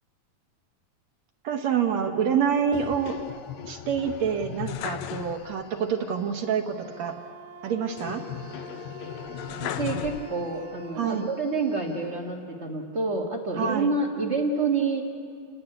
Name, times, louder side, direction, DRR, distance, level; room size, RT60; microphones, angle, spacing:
voice 1, 1.4-3.2 3.6-7.2 7.6-8.2 11.0-11.3 13.5-13.9, right 7 dB, 65° right, 4 dB, 1.9 m, -27 dB
sound 1, 2.7-5.8 6.1-6.2 8.0-10.7 11.2-12.1, left 10 dB, 80° left, 1.5 m, -37 dB
Wind instrument woodwind instrument, 6.7-11.4, right 6 dB, 85° right, 2.9 m, -46 dB
voice 2, 9.6-15.0, right 3 dB, 45° right, 0 dB, 0.8 m, -28 dB
29.5 x 11.0 x 10.0 m, 2.2 s
omnidirectional pair, 4.1 m